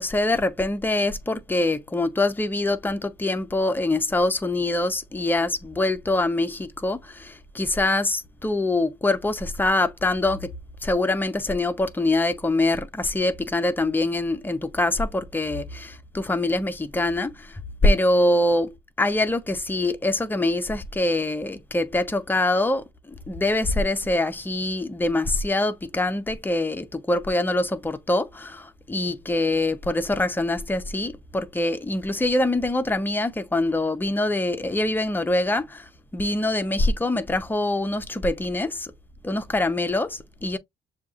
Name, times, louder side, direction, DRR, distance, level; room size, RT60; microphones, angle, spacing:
voice 1, 0.0-10.5 10.8-38.9 39.2-40.6, left 2 dB, 10° left, 0.7 m, -24 dB
6.8 x 2.8 x 2.4 m
cardioid pair, 110°, 17 cm